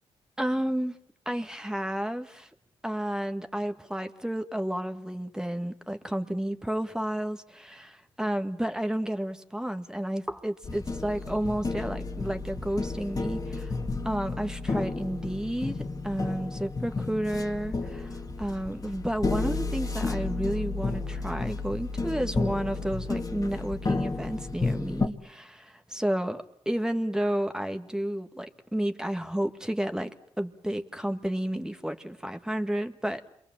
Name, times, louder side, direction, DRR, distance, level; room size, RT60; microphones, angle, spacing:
voice 1, 0.4-1.0 1.3-2.5 2.8-13.7 14.0-33.3, right 1 dB, 5° right, 1.8 m, -31 dB
sound 1, 10.6-25.1, left 3 dB, 35° left, 2.2 m, -32 dB
28.0 x 23.0 x 7.4 m
cardioid pair, 65°, 11 cm